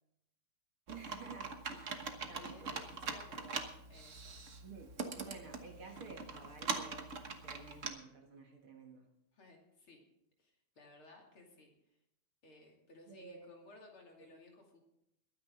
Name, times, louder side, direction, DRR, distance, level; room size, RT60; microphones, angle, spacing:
voice 1, 0.9-2.0 2.3-3.0 4.6-7.2 7.4-9.1 13.1-13.5, right 4 dB, 50° right, 2 dB, 2.1 m, -52 dB
Computer keyboard, 0.9-7.9, right 4 dB, 80° right, 0.6 m, -43 dB
voice 2, 2.3-3.6 3.9-4.4 9.3-10.0 10.4-11.7 12.4-14.8, left 2 dB, 45° left, 0 dB, 3.3 m, -58 dB
22.5 x 9.7 x 3.8 m, 0.79 s
omnidirectional pair, 3.4 m